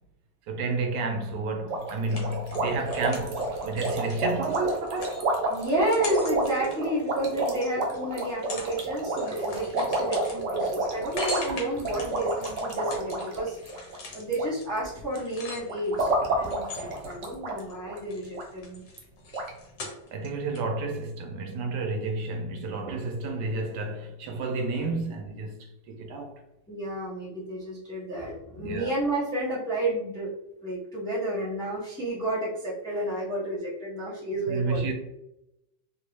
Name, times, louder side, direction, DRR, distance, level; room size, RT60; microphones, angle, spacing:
voice 1, 0.5-5.2 20.1-25.5 25.9-26.3 28.6-28.9 34.5-34.9, right 3 dB, 80° right, 1.2 m, -31 dB
sound 1, 1.7-14.5 14.7-15.2 15.7-17.6 17.9-18.0 18.3-18.4 19.0-19.1 19.3-19.5, right 2 dB, 60° right, 0.8 m, -30 dB
sound 2, 1.9-7.7 8.2-8.8 9.0-16.0 16.5-17.7 18.0-20.3 20.6-20.7, left 3 dB, 65° left, 1.2 m, -41 dB
voice 2, 2.0-2.3 5.5-13.6 13.9-18.8 26.7-30.3 30.6-34.9, right 1 dB, 5° left, 0.7 m, -31 dB
3.0 x 2.7 x 3.1 m
omnidirectional pair, 1.8 m